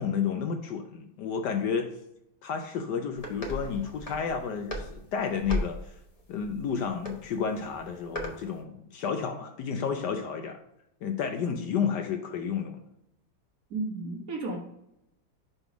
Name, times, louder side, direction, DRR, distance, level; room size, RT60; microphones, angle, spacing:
voice 1, 0.0-1.9 2.4-5.8 6.3-10.6 11.0-12.8, left 6 dB, 70° left, 5 dB, 1.1 m, -31 dB
sound 1, 3.2-8.4, equal, 45° left, 0.5 m, -37 dB
voice 2, 13.7-14.6, right 2 dB, 55° right, 1 dB, 1.2 m, -33 dB
5.4 x 4.0 x 4.6 m, 0.80 s
omnidirectional pair, 2.2 m